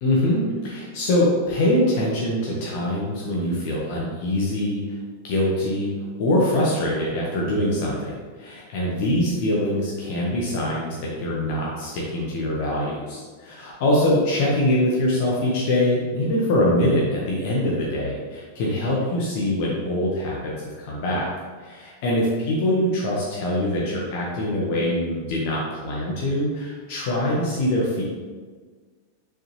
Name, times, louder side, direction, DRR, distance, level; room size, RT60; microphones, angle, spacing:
voice 1, 0.0-5.0 5.2-5.9 6.2-21.3 21.6-28.0, left 1 dB, 50° left, -4 dB, 1.5 m, -23 dB
6.9 x 6.7 x 3.3 m, 1.5 s
figure-of-eight pair, 90°, 0 cm